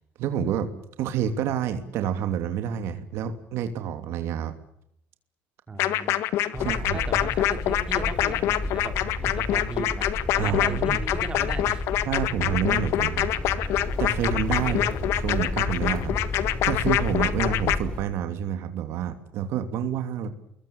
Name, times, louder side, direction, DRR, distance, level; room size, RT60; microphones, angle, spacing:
voice 1, 0.2-0.7 1.0-4.5 6.6-7.0 10.4-11.0 12.1-13.3 14.0-14.8 15.2-20.3, right 9 dB, 60° right, 8 dB, 2.9 m, -28 dB
voice 2, 5.7-6.2 6.5-12.1 14.6-15.0, right 4 dB, 20° right, 6 dB, 3.6 m, -37 dB
sound 1, 5.8-17.8, left 13 dB, 65° left, 1.7 m, -25 dB
sound 2, 6.5-18.0, left 2 dB, 20° left, 5.9 m, -32 dB
28.0 x 22.5 x 7.3 m, 0.74 s
cardioid pair, 145°, 5 cm